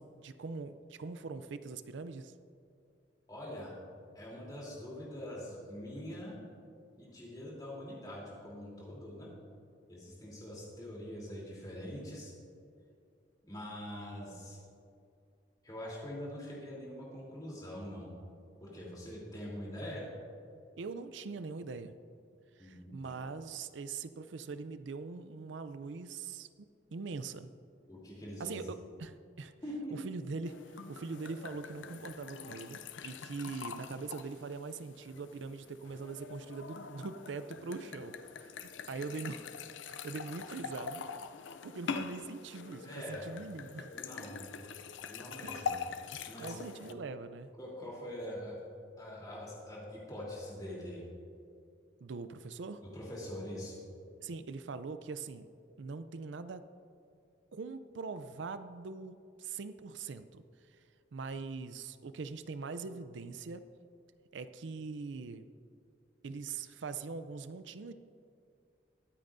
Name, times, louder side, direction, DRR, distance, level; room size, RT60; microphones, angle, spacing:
voice 1, 0.0-2.3 20.8-21.9 22.6-26.5 26.9-27.5 28.4-29.5 29.9-39.5 39.9-41.1 41.6-43.9 45.4-45.7 46.4-47.5 52.0-52.8 54.2-55.5 55.8-56.7 57.5-60.4 60.7-60.8 61.1-63.6 64.3-65.5 66.2-67.9, right 4 dB, 80° right, 11 dB, 0.5 m, -42 dB
voice 2, 3.3-3.7 4.1-6.4 7.0-9.3 9.9-12.3 13.4-14.6 15.6-18.1 18.6-20.0 22.6-23.1 27.9-28.6 29.6-29.9 42.8-43.3 43.9-44.5 45.1-45.7 46.2-46.5 46.9-47.0 47.6-48.6 49.0-51.0 52.8-53.8, equal, 20° left, -5 dB, 3.3 m, -44 dB
sound 1, 30.4-46.9, left 6 dB, 85° left, 0.5 m, -44 dB
22.5 x 8.9 x 2.6 m, 2.4 s
head